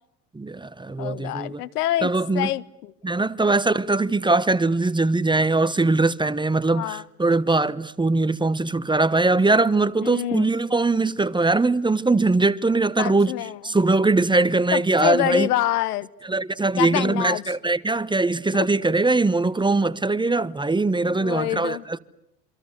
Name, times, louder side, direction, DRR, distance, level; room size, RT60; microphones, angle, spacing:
voice 1, 0.3-1.6 2.0-2.5 3.0-13.3 13.6-15.5 16.3-22.0, right 3 dB, 10° right, 1.0 m, -21 dB
voice 2, 1.0-2.9 6.7-7.0 10.0-10.5 13.0-13.6 14.7-16.1 16.8-17.4 18.5-18.7 21.0-21.8, left 15 dB, 75° left, 1.1 m, -26 dB
27.5 x 25.5 x 8.2 m
hypercardioid pair, 70°, 46 cm